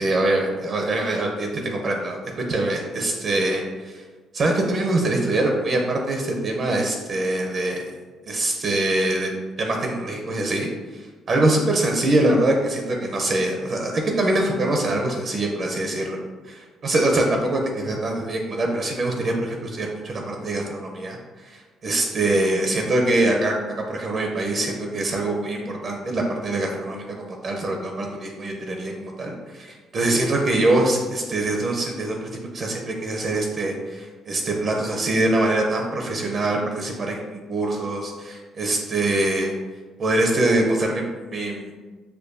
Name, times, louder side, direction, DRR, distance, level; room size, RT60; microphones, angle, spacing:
voice 1, 0.0-1.5 1.8-2.2 2.5-4.0 4.3-7.9 8.3-9.3 9.6-16.2 16.4-39.5 40.0-41.0 41.3-41.7, right 2 dB, 45° right, 1 dB, 0.6 m, -24 dB
6.6 x 2.2 x 2.6 m, 1.4 s
cardioid pair, 105°, 0 cm